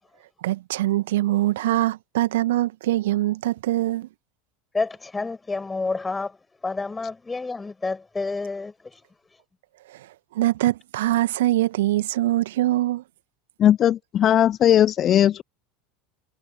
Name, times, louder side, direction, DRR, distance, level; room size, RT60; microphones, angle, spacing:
voice 1, 0.4-4.1 9.9-13.0, right 15 dB, 65° right, 1.8 m, -23 dB
voice 2, 4.7-6.4 6.6-9.0, left 3 dB, 15° left, 7.6 m, -29 dB
voice 3, 13.6-15.4, left 10 dB, 35° left, 0.3 m, -18 dB
figure-of-eight pair, 75°, 0 cm